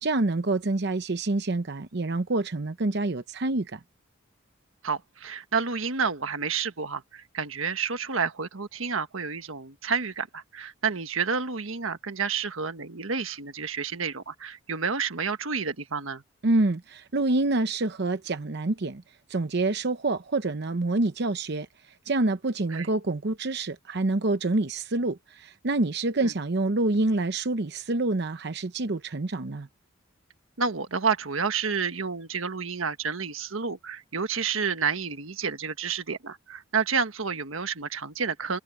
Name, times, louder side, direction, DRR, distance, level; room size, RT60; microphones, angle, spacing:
voice 1, 0.0-3.8 16.4-19.0 19.3-21.7 22.1-29.7, right 2 dB, 55° right, 0.8 m, -27 dB
voice 2, 4.8-16.2 22.7-22.9 26.2-26.3 30.6-38.6, right 5 dB, 90° right, 1.4 m, -30 dB
head